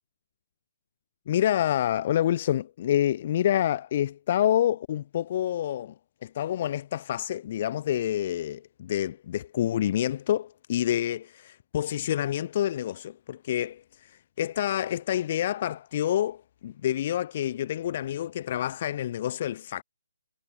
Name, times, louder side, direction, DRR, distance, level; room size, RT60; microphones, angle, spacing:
voice 1, 1.3-5.9 6.2-19.8, left 11 dB, 30° left, 7.1 m, -28 dB
hypercardioid pair, 165°, 0 cm